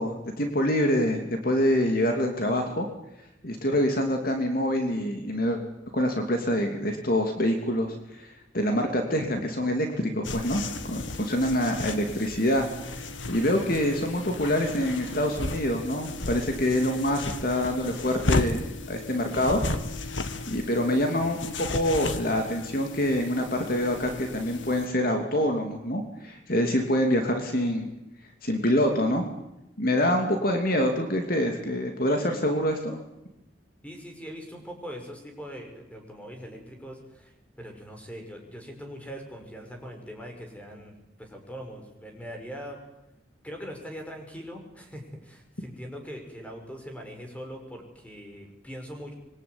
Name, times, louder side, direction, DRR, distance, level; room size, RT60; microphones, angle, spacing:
voice 1, 0.0-2.9 3.4-5.6 5.9-12.7 13.0-19.6 20.5-27.9 28.4-29.2 29.8-33.0, equal, 50° left, 4 dB, 3.0 m, -26 dB
sound 1, 10.2-24.9, left 2 dB, 85° left, 2.0 m, -34 dB
voice 2, 33.8-42.8 43.4-49.1, equal, 5° left, 3 dB, 6.2 m, -41 dB
25.5 x 23.0 x 9.8 m, 0.91 s
head